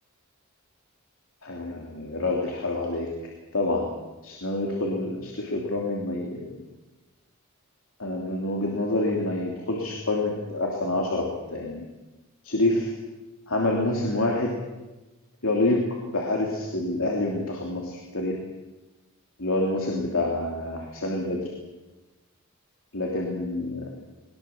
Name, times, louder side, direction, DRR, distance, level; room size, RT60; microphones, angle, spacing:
voice 1, 1.4-3.1 3.5-3.9 4.2-6.6 8.0-11.8 12.4-12.9 13.5-14.6 15.4-18.4 19.4-21.4 22.9-23.9, left 2 dB, 70° left, -1 dB, 3.1 m, -27 dB
21.5 x 20.0 x 7.3 m, 1.1 s
head